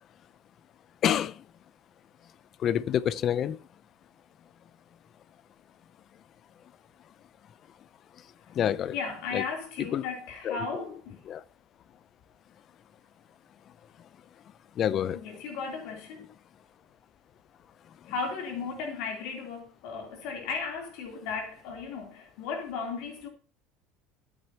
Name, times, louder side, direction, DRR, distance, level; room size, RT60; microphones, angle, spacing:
voice 1, 1.0-1.4 2.6-3.6 8.5-9.0 9.3-9.4 9.9-10.0 10.4-10.9 11.3-11.4 14.8-15.2, left 10 dB, 35° left, 0.5 m, -27 dB
voice 2, 8.9-11.2 15.1-16.3 18.1-23.3, left 5 dB, 60° left, 3.2 m, -35 dB
14.0 x 8.9 x 2.9 m
cardioid pair, 165°, 0 cm